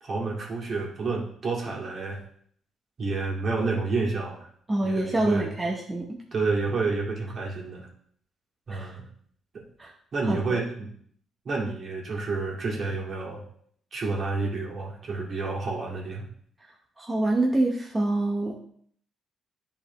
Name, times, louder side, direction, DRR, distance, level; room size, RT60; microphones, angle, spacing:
voice 1, 0.0-2.2 3.0-4.5 4.8-5.6 6.3-7.9 8.7-9.1 9.5-9.6 10.1-10.9 11.4-13.4 13.9-16.3, right 3 dB, 50° right, -2 dB, 2.2 m, -29 dB
voice 2, 4.7-6.0 8.7-8.9 9.8-9.9 10.3-10.6 17.0-18.6, right 2 dB, 20° right, -2 dB, 0.9 m, -26 dB
10.5 x 4.3 x 3.0 m, 0.62 s
cardioid pair, 90°, 0 cm